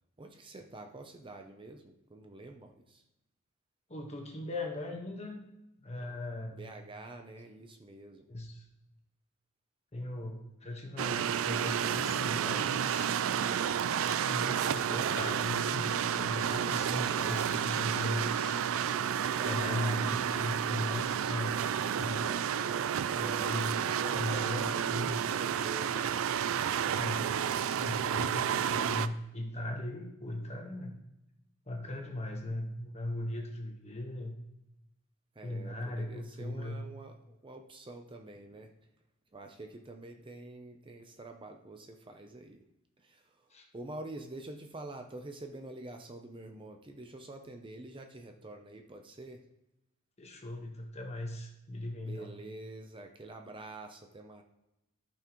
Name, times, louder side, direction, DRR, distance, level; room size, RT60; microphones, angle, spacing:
voice 1, 0.2-3.0 6.5-8.3 19.4-20.1 23.1-26.2 35.3-38.7 39.3-42.6 43.0-49.4 52.0-54.4, right 2 dB, 25° right, 4 dB, 0.7 m, -47 dB
voice 2, 3.9-5.5 5.8-6.6 8.3-8.7 9.9-13.1 14.0-18.6 19.4-21.6 22.0-22.5 23.1-23.8 24.1-25.2 26.9-27.4 27.6-31.0 31.7-34.3 35.4-36.8 43.5-43.7 50.2-52.3, left 1 dB, 30° left, 2 dB, 1.4 m, -38 dB
sound 1, 11.0-29.1, right 8 dB, 70° right, 0.4 m, -31 dB
13.5 x 5.9 x 3.1 m, 0.91 s
head